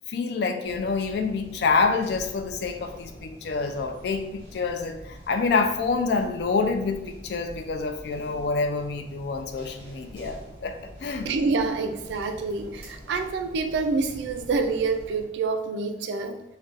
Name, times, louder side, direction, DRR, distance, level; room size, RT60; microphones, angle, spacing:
voice 1, 0.1-11.3, left 4 dB, 65° left, 6 dB, 0.3 m, -27 dB
sound 1, 0.6-15.2, equal, 35° right, 1.2 m, -45 dB
voice 2, 11.2-16.4, right 4 dB, 75° right, 7 dB, 0.3 m, -27 dB
3.9 x 2.1 x 2.4 m, 0.88 s
head